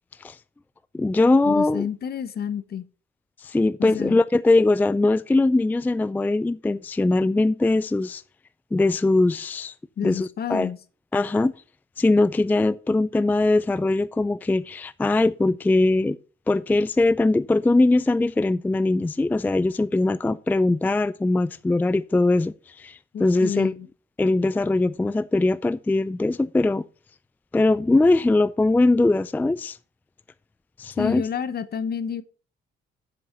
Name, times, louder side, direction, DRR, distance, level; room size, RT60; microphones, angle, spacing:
voice 1, 0.9-1.9 3.4-8.2 8.7-9.7 10.0-10.7 11.1-11.5 12.0-16.2 16.5-23.7 24.2-26.8 27.5-29.8 30.8-31.2, left 2 dB, 10° left, 0.3 m, -21 dB
voice 2, 1.4-2.9 3.8-4.2 10.0-10.8 23.1-23.9 31.0-32.2, left 8 dB, 50° left, 0.9 m, -29 dB
7.5 x 6.3 x 5.5 m
cardioid pair, 90°, 20 cm